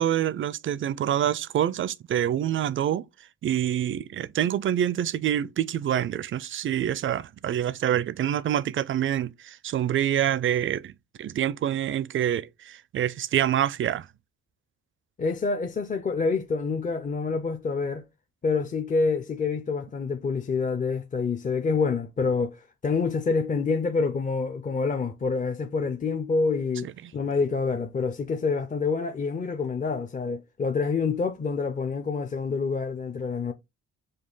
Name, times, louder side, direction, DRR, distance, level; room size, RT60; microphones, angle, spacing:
voice 1, 0.0-3.0 3.4-10.9 11.2-14.1 26.8-26.9, right 10 dB, 45° right, 0.4 m, -26 dB
voice 2, 15.2-18.0 18.4-33.5, left 4 dB, 25° left, 0.5 m, -27 dB
5.1 x 2.3 x 3.8 m
cardioid pair, 90°, 30 cm